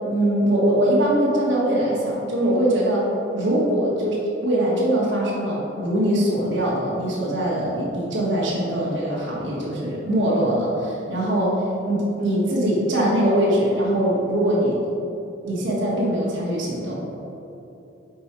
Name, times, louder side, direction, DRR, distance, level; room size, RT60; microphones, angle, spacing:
voice 1, 0.1-3.1 3.3-14.8 15.4-16.9, right 1 dB, 65° right, -6 dB, 1.5 m, -22 dB
5.3 x 4.8 x 4.4 m, 3.0 s
head